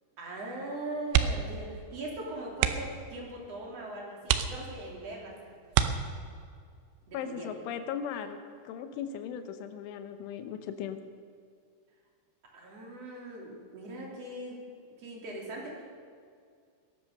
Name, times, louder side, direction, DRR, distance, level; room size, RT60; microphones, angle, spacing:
voice 1, 0.2-5.5 7.1-7.5 12.5-14.6 15.0-15.9, right 1 dB, 35° right, -2 dB, 3.2 m, -40 dB
sound 1, 1.0-1.6 1.9-2.1 2.5-3.0 3.6-3.7 4.2-5.0 5.7-6.5 8.0-8.4 8.7-8.8, right 10 dB, 80° right, 2.6 m, -28 dB
voice 2, 7.1-8.4 8.6-11.0, left 8 dB, 80° left, 9 dB, 3.2 m, -37 dB
19.5 x 11.5 x 6.5 m, 2.2 s
omnidirectional pair, 5.8 m